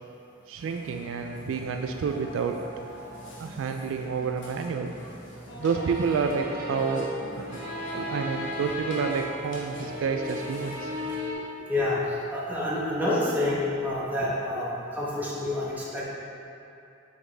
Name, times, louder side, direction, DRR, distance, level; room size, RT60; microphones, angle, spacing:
voice 1, 0.5-2.6 3.4-4.9 5.6-7.1 7.4-7.6 7.9-10.9 11.4-11.5 14.2-14.3, right 5 dB, 80° right, 4 dB, 0.3 m, -29 dB
Burping eructation, 0.6-11.2, equal, 70° left, 1.0 m, -44 dB
sound 1, 5.6-9.4 9.7-11.3, left 1 dB, 50° right, 1.3 m, -35 dB
voice 2, 11.7-16.0, left 1 dB, 10° right, -7 dB, 1.0 m, -28 dB
7.5 x 4.1 x 3.3 m, 2.7 s
head